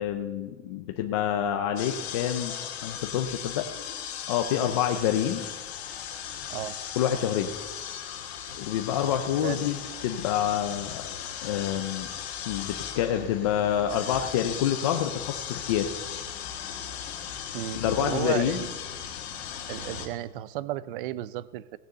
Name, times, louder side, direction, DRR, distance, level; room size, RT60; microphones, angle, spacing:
voice 1, 0.0-2.6 2.8-3.7 4.3-5.5 7.0-7.5 8.6-11.0 11.4-12.1 12.5-15.9 17.7-18.6, left 10 dB, 25° left, 5 dB, 0.3 m, -27 dB
sound 1, 1.8-20.1, left 9 dB, 50° left, 1.7 m, -37 dB
voice 2, 17.5-18.7 19.7-21.8, right 13 dB, 45° right, 18 dB, 0.5 m, -33 dB
17.0 x 6.6 x 7.8 m, 1.3 s
supercardioid pair, 165°, 39 cm